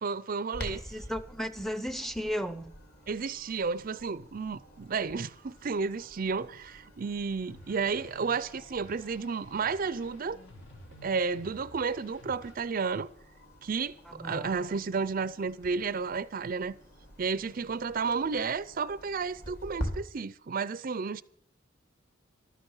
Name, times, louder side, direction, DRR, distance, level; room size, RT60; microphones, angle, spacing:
voice 1, 0.0-0.8 3.1-10.4 11.0-13.1 13.6-16.7 17.2-21.2, right 5 dB, 45° right, 0.5 m, -32 dB
Clock, 0.5-19.9, equal, 50° left, 3.3 m, -47 dB
voice 2, 0.7-2.7 14.1-14.6, equal, ahead, 0.6 m, -35 dB
sound 1, 7.5-12.5, left 1 dB, 75° left, 3.2 m, -52 dB
14.5 x 12.5 x 5.5 m
head